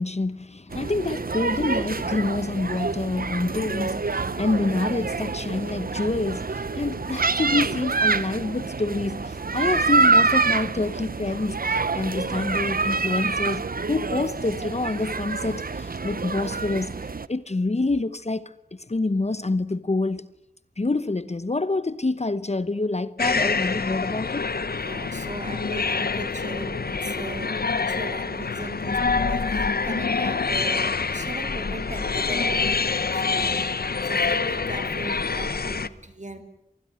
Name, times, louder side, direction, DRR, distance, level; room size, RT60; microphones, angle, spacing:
voice 1, 0.0-20.3 20.8-24.5, left 2 dB, 45° left, 1.0 m, -27 dB
sound 1, 0.7-17.3, right 4 dB, 70° right, 0.9 m, -26 dB
sound 2, 23.2-35.9, left 4 dB, 80° left, 1.0 m, -26 dB
voice 2, 24.8-33.7 34.0-36.4, right 2 dB, 50° right, 3.5 m, -38 dB
27.0 x 20.5 x 9.8 m
wide cardioid pair, 60°, 16 cm